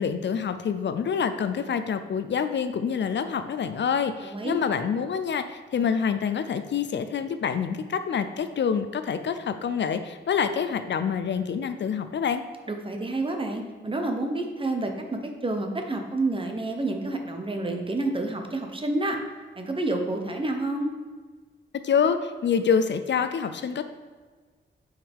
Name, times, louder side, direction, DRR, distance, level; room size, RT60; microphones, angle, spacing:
voice 1, 0.0-12.4 21.8-23.8, left 7 dB, 65° left, 9 dB, 0.5 m, -26 dB
voice 2, 4.2-4.5 12.7-19.2 19.5-20.9, right 2 dB, 25° right, 3 dB, 0.9 m, -29 dB
8.7 x 4.8 x 3.5 m, 1.4 s
wide cardioid pair, 120°, 20 cm